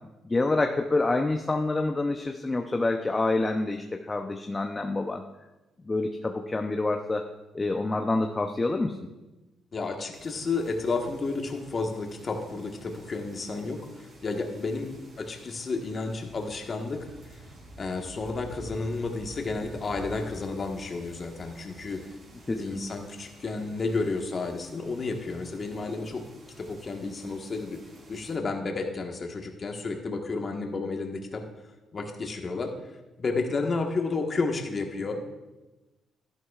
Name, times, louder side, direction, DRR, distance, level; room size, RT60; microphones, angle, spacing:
voice 1, 0.2-5.2 5.8-7.2 7.5-9.0 22.5-22.8, left 2 dB, 20° left, 4 dB, 0.6 m, -27 dB
voice 2, 9.7-14.9 15.2-17.4 17.8-22.0 22.6-26.2 26.6-27.8 28.1-31.5 31.9-32.7 33.2-35.3, left 3 dB, 40° left, 3 dB, 1.4 m, -31 dB
sound 1, 10.1-28.4, right 2 dB, 55° right, 3.7 m, -50 dB
12.0 x 11.0 x 2.4 m, 1.1 s
cardioid pair, 90°, 0 cm